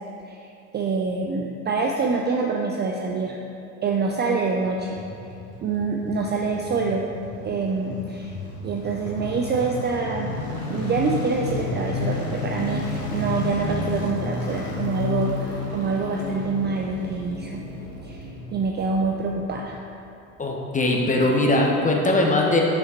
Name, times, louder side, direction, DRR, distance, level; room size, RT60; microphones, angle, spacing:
voice 1, 0.2-3.4 3.8-5.0 5.6-7.1 7.4-8.3 8.6-10.3 10.7-17.6 18.0-19.7, right 4 dB, 25° right, 0 dB, 0.5 m, -26 dB
sound 1, 4.6-19.8 20.0-20.1, left 3 dB, 80° left, 1.6 m, -32 dB
sound 2, 9.1-18.3, right 3 dB, 90° right, 1.6 m, -43 dB
voice 2, 20.4-22.6, left 2 dB, 15° left, 0 dB, 1.1 m, -20 dB
6.0 x 5.5 x 4.4 m, 2.7 s
figure-of-eight pair, 70°, 44 cm